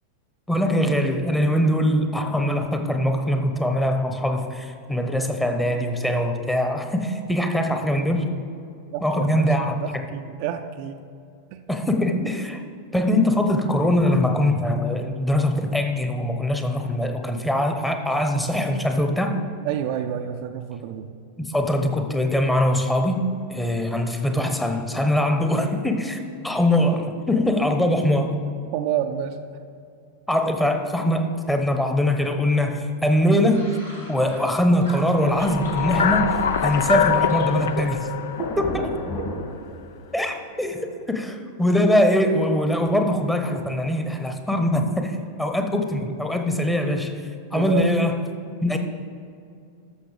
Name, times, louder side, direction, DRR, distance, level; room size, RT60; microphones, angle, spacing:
voice 1, 0.5-8.3 9.0-10.0 11.7-12.6 12.9-19.4 21.4-26.2 26.4-28.4 30.3-33.7 34.1-38.1 38.6-38.9 40.1-40.8 41.1-47.2 47.5-48.2 48.6-48.8, left 1 dB, 5° left, 5 dB, 1.0 m, -22 dB
voice 2, 8.9-11.0 11.5-11.6 19.6-21.1 27.9-28.0 28.7-29.4 38.4-38.5 47.5-47.9, right 10 dB, 45° right, 6 dB, 0.5 m, -29 dB
sound 1, 33.1-34.5 34.8-37.5 37.8-38.6 38.9-39.3, equal, 80° left, 2.4 m, -41 dB
sound 2, 35.2-39.5, left 8 dB, 60° left, 0.5 m, -24 dB
Thunder, 35.4-40.2, left 1 dB, 35° left, 2.2 m, -34 dB
13.5 x 6.5 x 4.9 m, 2.4 s
figure-of-eight pair, 90°, 0 cm